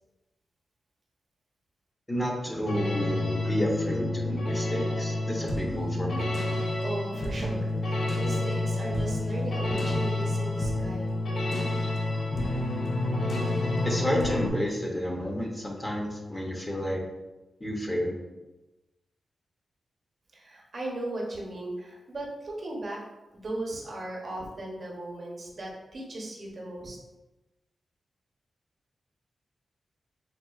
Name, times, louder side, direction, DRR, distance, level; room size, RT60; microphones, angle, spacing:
voice 1, 2.1-6.5 13.8-17.0 17.6-18.2, equal, 20° left, -1 dB, 0.7 m, -30 dB
sound 1, 2.6-14.5, left 2 dB, 65° left, 0.5 m, -29 dB
voice 2, 6.8-11.1 20.3-23.0 23.3-27.0, right 1 dB, 55° right, -2 dB, 0.8 m, -37 dB
4.2 x 2.3 x 2.3 m, 1.0 s
cardioid pair, 70°, 0 cm